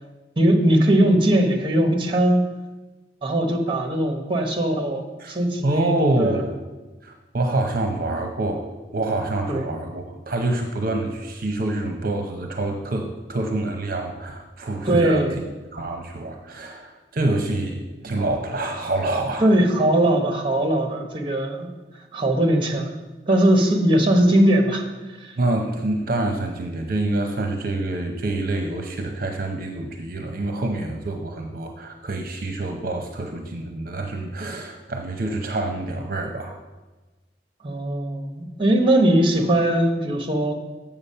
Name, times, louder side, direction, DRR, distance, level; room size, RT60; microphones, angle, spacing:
voice 1, 0.4-2.4 3.2-5.9 6.2-6.4 9.5-9.7 14.8-15.4 19.4-21.7 22.1-22.9 23.3-24.9 25.2-25.3 37.6-40.5, right 1 dB, 30° right, 4 dB, 1.0 m, -20 dB
voice 2, 5.6-6.5 7.0-15.3 15.7-19.5 25.4-36.6, right 2 dB, 55° right, 4 dB, 0.7 m, -26 dB
7.3 x 6.9 x 5.5 m, 1.2 s
head